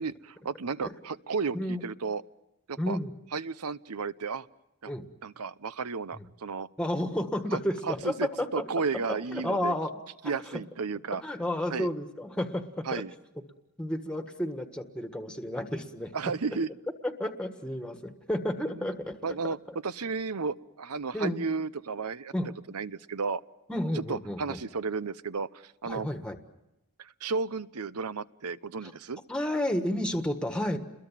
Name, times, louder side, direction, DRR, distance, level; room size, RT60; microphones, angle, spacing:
voice 1, 0.0-2.2 2.7-3.0 3.3-4.5 4.8-4.9 5.2-6.7 7.5-9.7 10.2-11.2 11.7-11.9 12.9-13.1 16.1-16.7 18.7-18.9 19.2-19.6 19.8-22.3 22.7-23.4 23.9-26.1 27.0-29.2, right 4 dB, 90° right, 16 dB, 0.8 m, -33 dB
voice 2, 2.8-3.1 4.9-5.0 6.1-6.3 6.8-8.6 8.9-10.6 11.2-13.0 13.8-16.1 17.0-19.2 21.1-21.4 22.3-22.5 23.7-24.6 25.9-26.4 28.8-28.9 29.3-30.8, left 1 dB, 5° left, 7 dB, 1.5 m, -31 dB
29.5 x 22.0 x 7.4 m, 0.93 s
head